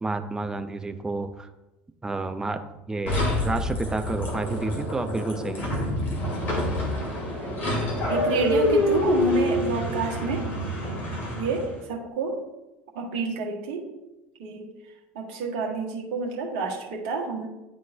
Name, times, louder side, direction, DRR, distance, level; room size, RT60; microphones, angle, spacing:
voice 1, 0.0-1.5 2.0-2.6 2.9-5.7, right 3 dB, 10° right, 7 dB, 0.5 m, -30 dB
sound 1, 3.1-11.8, left 1 dB, 35° left, 2.3 m, -27 dB
voice 2, 8.1-10.5 11.3-12.4 12.9-13.8 14.4-14.7 15.1-17.5, right 3 dB, 55° right, 0 dB, 1.4 m, -29 dB
11.0 x 3.7 x 2.6 m, 1.0 s
figure-of-eight pair, 70°, 5 cm